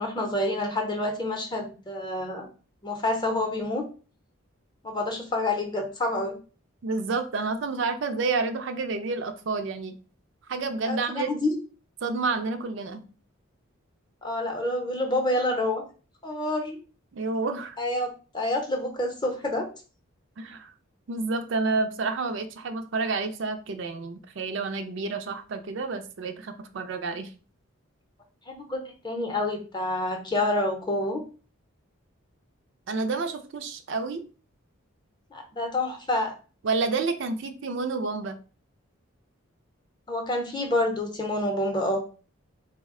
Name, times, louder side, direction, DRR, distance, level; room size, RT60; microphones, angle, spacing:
voice 1, 0.0-2.5 2.8-3.8 4.8-6.4 10.9-11.5 14.2-15.8 16.2-16.8 17.8-18.1 18.3-19.7 28.5-31.2 35.3-36.3 40.1-42.0, left 1 dB, 20° left, 3 dB, 0.6 m, -28 dB
voice 2, 6.8-9.9 10.5-11.3 12.0-13.0 17.1-17.8 20.4-20.7 21.1-27.3 32.9-34.2 36.6-38.4, right 4 dB, 60° right, 7 dB, 0.4 m, -29 dB
3.9 x 2.1 x 3.6 m, 0.36 s
head